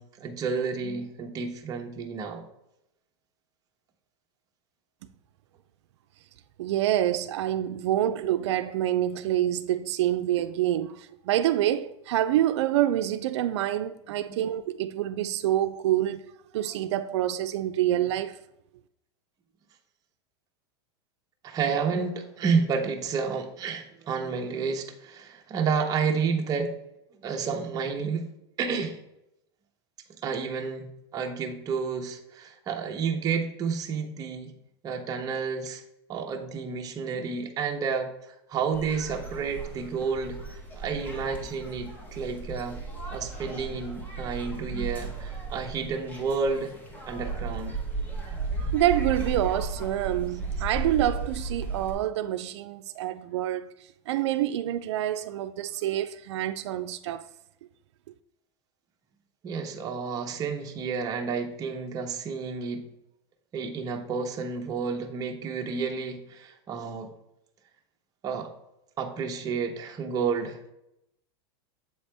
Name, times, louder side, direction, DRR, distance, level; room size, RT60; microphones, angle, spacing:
voice 1, 0.0-2.4 8.0-8.1 14.3-14.4 21.4-26.7 27.2-28.3 28.6-29.0 30.2-34.5 34.8-35.8 36.1-40.4 40.8-42.8 43.1-46.7 47.1-47.8 59.4-62.9 63.5-67.1 68.2-68.5 69.0-70.7, right 5 dB, 25° right, 0.9 m, -30 dB
voice 2, 6.6-18.4 48.3-57.2, right 12 dB, 85° right, 0.4 m, -27 dB
sound 1, 38.7-51.9, right 3 dB, 10° left, 1.1 m, -35 dB
7.6 x 4.3 x 3.4 m
supercardioid pair, 145°, 14 cm